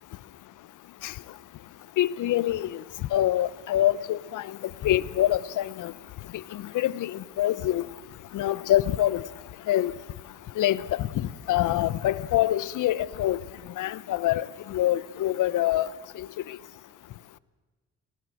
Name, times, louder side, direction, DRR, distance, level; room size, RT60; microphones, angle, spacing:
voice 1, 2.0-2.7 3.1-4.4 4.8-5.9 6.5-7.8 8.3-9.2 9.7-9.9 10.6-13.4 13.8-14.4 14.7-15.9, left 13 dB, 65° left, 1.0 m, -25 dB
27.0 x 19.0 x 7.8 m
supercardioid pair, 60°, 33 cm